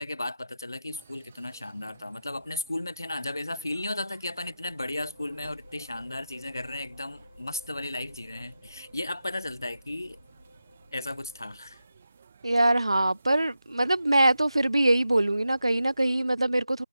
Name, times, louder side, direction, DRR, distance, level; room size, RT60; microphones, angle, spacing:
voice 1, 0.0-10.2 10.9-11.8, left 1 dB, 40° left, 0.7 m, -35 dB
sound 1, 0.9-16.2, right 6 dB, 5° right, 1.1 m, -58 dB
sound 2, 4.5-12.3, left 1 dB, 65° left, 3.4 m, -53 dB
voice 2, 12.4-16.8, right 1 dB, 85° right, 0.4 m, -23 dB
figure-of-eight pair, 180°, 3 cm